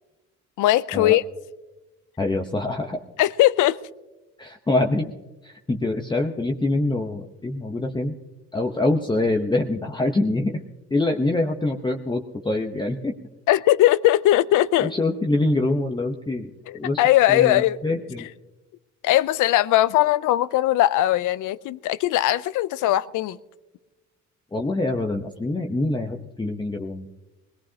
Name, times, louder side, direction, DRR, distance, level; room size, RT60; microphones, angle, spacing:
voice 1, 0.6-1.2 3.2-3.8 13.5-14.9 16.7-17.8 18.2-18.3 19.0-23.4, left 14 dB, 85° left, 17 dB, 0.5 m, -19 dB
voice 2, 2.2-3.0 4.4-5.1 5.4-8.1 8.5-10.6 10.9-13.1 14.8-17.0 17.3-18.3 24.5-27.1, left 2 dB, 15° left, 1 dB, 0.9 m, -25 dB
21.0 x 18.0 x 2.8 m, 1.1 s
cardioid pair, 90°, 30 cm